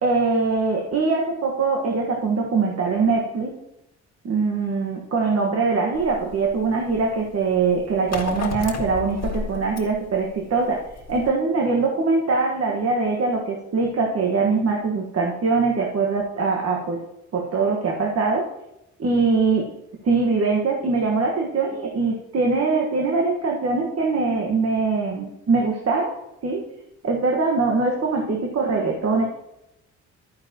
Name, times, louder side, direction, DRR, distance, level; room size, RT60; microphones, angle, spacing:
voice 1, 0.0-3.5 4.2-10.8 11.1-17.0 17.3-18.4 19.0-19.6 20.0-26.2 26.4-26.6 27.0-29.2, right 4 dB, 55° right, -1 dB, 1.5 m, -22 dB
sound 1, 5.9-11.3, left 4 dB, 60° left, 1.7 m, -34 dB
10.5 x 9.5 x 2.9 m, 0.87 s
cardioid pair, 90°, 30 cm